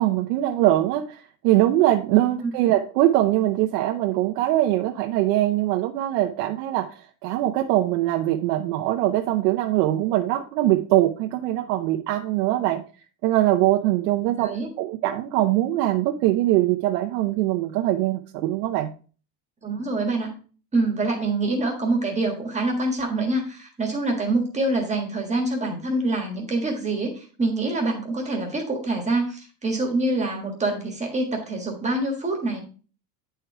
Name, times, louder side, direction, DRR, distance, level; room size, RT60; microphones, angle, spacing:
voice 1, 0.0-12.8 13.2-18.9, right 14 dB, 90° right, 3 dB, 0.9 m, -22 dB
voice 2, 14.4-14.7 19.6-20.3 20.7-32.6, right 2 dB, 15° right, 2 dB, 1.5 m, -25 dB
9.7 x 4.6 x 4.6 m, 0.38 s
cardioid pair, 165°, 46 cm